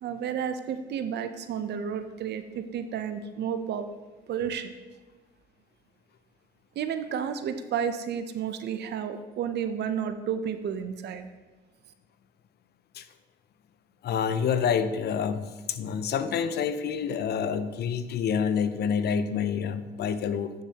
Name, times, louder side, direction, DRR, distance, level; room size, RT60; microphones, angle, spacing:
voice 1, 0.0-3.9 4.3-4.7 6.8-11.3, right 8 dB, 65° right, 9 dB, 0.7 m, -31 dB
voice 2, 14.0-20.6, left 7 dB, 60° left, 12 dB, 0.6 m, -28 dB
9.7 x 6.6 x 2.9 m, 1.2 s
cardioid pair, 80°, 19 cm